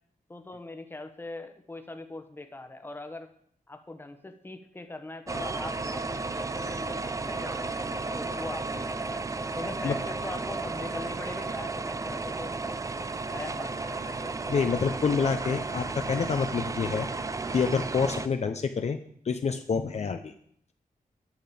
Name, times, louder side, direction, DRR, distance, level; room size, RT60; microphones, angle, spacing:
voice 1, 0.3-3.3 3.7-9.2 9.6-12.8 13.3-14.6, left 2 dB, 15° left, 7 dB, 1.1 m, -41 dB
sound 1, 5.3-18.3, right 3 dB, 20° right, 0.5 m, -33 dB
voice 2, 14.5-17.1 17.5-19.0 19.3-20.3, left 5 dB, 50° left, 7 dB, 0.6 m, -27 dB
10.0 x 6.0 x 8.5 m, 0.65 s
wide cardioid pair, 170°, 15 cm